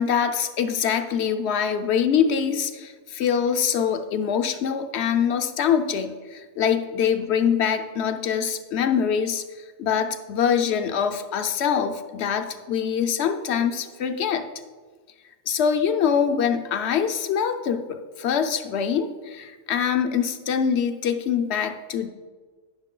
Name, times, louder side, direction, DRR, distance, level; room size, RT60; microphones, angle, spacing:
voice 1, 0.0-9.4 9.8-14.5 15.5-22.1, left 7 dB, 70° left, 7 dB, 0.9 m, -24 dB
9.8 x 6.3 x 3.7 m, 1.4 s
omnidirectional pair, 1.2 m